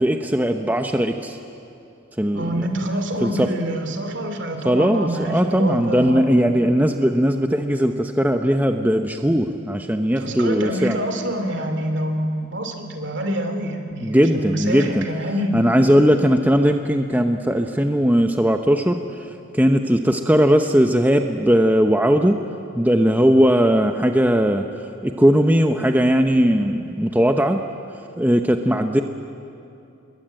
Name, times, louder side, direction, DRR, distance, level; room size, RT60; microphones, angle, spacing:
voice 1, 0.0-1.4 2.2-2.6 3.2-3.5 4.6-11.0 14.0-15.0 15.5-19.3 19.5-22.4 22.7-24.6 25.0-27.6 28.2-29.0, equal, 10° right, 5 dB, 0.8 m, -18 dB
voice 2, 2.3-6.3 10.2-15.6, equal, 60° right, 6 dB, 2.7 m, -26 dB
26.5 x 22.0 x 9.0 m, 2.7 s
head